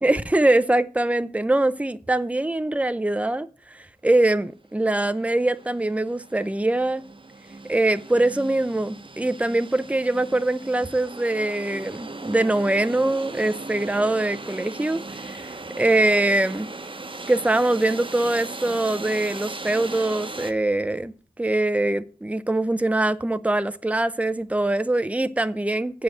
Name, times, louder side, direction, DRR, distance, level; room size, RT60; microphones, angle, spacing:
voice 1, 0.0-7.0 7.7-16.7 17.3-26.0, right 2 dB, 10° right, 0.5 m, -23 dB
sound 1, 4.5-4.6 4.9-20.5, right 3 dB, 35° right, 1.0 m, -38 dB
7.7 x 5.2 x 7.5 m
cardioid pair, 40°, 14 cm